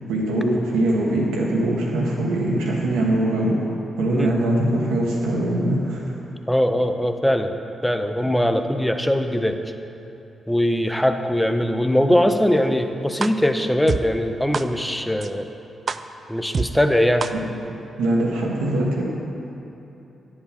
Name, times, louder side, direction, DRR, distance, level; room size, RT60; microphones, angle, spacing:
voice 1, 0.1-3.5 4.0-6.1 17.3-17.4 18.0-19.0, right 1 dB, 85° right, -3 dB, 1.2 m, -22 dB
voice 2, 6.5-7.6 7.8-9.6 10.5-15.5 16.3-17.3, equal, 5° left, 7 dB, 0.7 m, -21 dB
sound 1, 13.2-13.3 13.9-14.0 14.5-14.6 15.2-15.3 15.9-16.0 16.5-16.7 17.2-17.3, right 5 dB, 50° right, 0.3 m, -24 dB
10.5 x 5.3 x 5.1 m, 2.9 s
hypercardioid pair, 40°, 0 cm